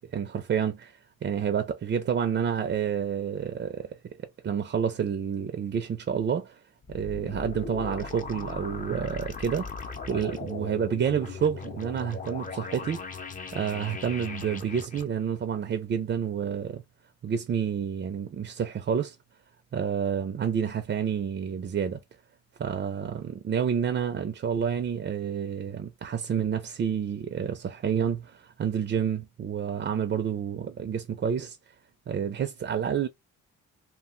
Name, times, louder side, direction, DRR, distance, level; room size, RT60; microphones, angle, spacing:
voice 1, 0.1-0.9 1.2-4.1 4.4-6.6 6.9-9.7 10.1-13.0 13.5-16.8 17.2-19.2 19.7-22.0 22.6-31.6 32.1-33.1, right 8 dB, 40° right, 0.5 m, -29 dB
sound 1, 6.8-15.0, left 4 dB, 25° left, 0.7 m, -38 dB
2.4 x 2.2 x 3.7 m
cardioid pair, 90°, 30 cm